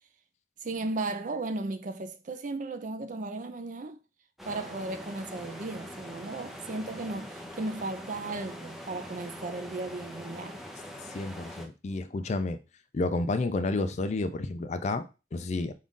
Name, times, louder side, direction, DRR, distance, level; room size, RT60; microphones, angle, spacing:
voice 1, 0.6-4.0 4.5-10.6, right 2 dB, 40° right, 0.4 m, -35 dB
sound 1, 4.4-11.7, equal, ahead, 0.7 m, -43 dB
voice 2, 11.1-12.6 12.9-15.7, left 3 dB, 35° left, 0.3 m, -30 dB
5.2 x 2.5 x 3.6 m
head